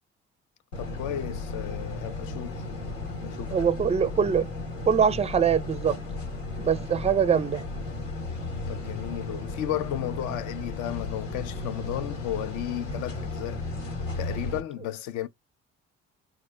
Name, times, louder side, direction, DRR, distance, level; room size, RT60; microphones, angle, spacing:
sound 1, 0.7-14.6, left 2 dB, 80° left, 1.1 m, -35 dB
voice 1, 0.8-3.0 3.2-3.6 8.7-13.6 14.2-15.3, left 12 dB, 55° left, 0.5 m, -34 dB
voice 2, 3.5-4.5 4.9-6.0 6.6-7.6, right 7 dB, 20° right, 0.4 m, -23 dB
3.7 x 2.0 x 3.2 m
figure-of-eight pair, 50°, 37 cm